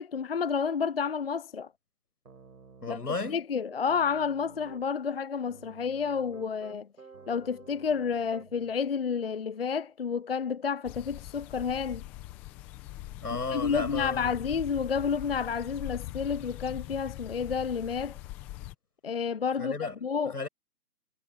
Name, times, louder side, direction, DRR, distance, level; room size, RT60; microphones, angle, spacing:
voice 1, 0.0-1.7 2.9-3.0 3.3-6.9 7.3-12.0 13.5-18.2 19.0-20.4, left 6 dB, 40° left, 0.6 m, -30 dB
Piano, 2.3-3.3 3.7-4.8 5.5-8.7, right 4 dB, 75° right, 5.2 m, -52 dB
voice 2, 2.8-3.4 13.1-14.3 19.6-20.0 20.2-20.5, left 3 dB, 80° left, 7.8 m, -34 dB
sound 1, 10.8-18.7, left 16 dB, 5° left, 0.8 m, -42 dB
figure-of-eight pair, 150°, 46 cm